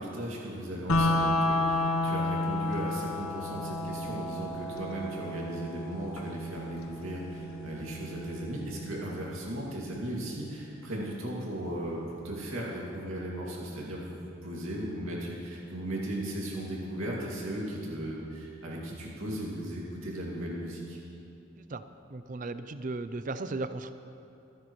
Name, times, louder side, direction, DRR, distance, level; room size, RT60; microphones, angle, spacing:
voice 1, 0.0-21.0, right 1 dB, 85° right, -4 dB, 2.4 m, -37 dB
sound 1, 0.9-10.9, left 2 dB, 90° left, 1.1 m, -32 dB
voice 2, 22.1-23.9, right 3 dB, 40° right, 11 dB, 0.5 m, -36 dB
26.0 x 9.7 x 3.2 m, 2.8 s
head